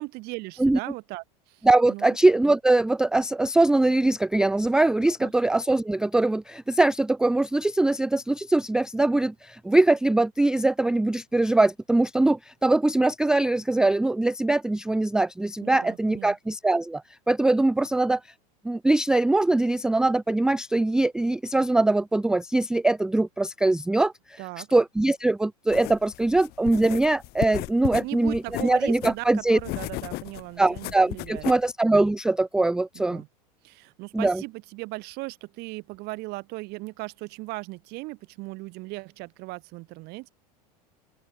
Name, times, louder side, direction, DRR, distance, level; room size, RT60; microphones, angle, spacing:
voice 1, 0.0-2.2 5.1-5.3 15.6-16.4 24.4-24.7 28.0-31.5 32.9-33.3 33.6-40.3, right 23 dB, 55° right, 5.7 m, -38 dB
voice 2, 1.6-18.2 18.6-24.4 24.7-29.6 30.6-33.2 34.1-34.4, right 2 dB, 5° right, 0.3 m, -22 dB
sound 1, 25.7-31.7, left 21 dB, 50° left, 2.7 m, -35 dB
open air
hypercardioid pair, 90°, 20 cm